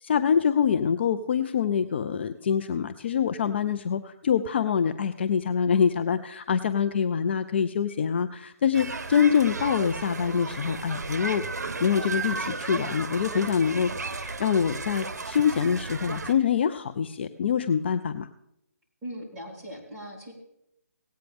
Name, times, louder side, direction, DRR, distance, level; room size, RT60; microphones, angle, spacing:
voice 1, 0.0-11.4 11.8-18.3, left 7 dB, 40° left, 9 dB, 0.5 m, -25 dB
sound 1, 8.7-16.3, right 4 dB, 75° right, 0.9 m, -34 dB
voice 2, 19.0-20.3, equal, 10° right, -8 dB, 3.5 m, -39 dB
18.0 x 8.9 x 3.5 m, 0.78 s
hypercardioid pair, 160°, 9 cm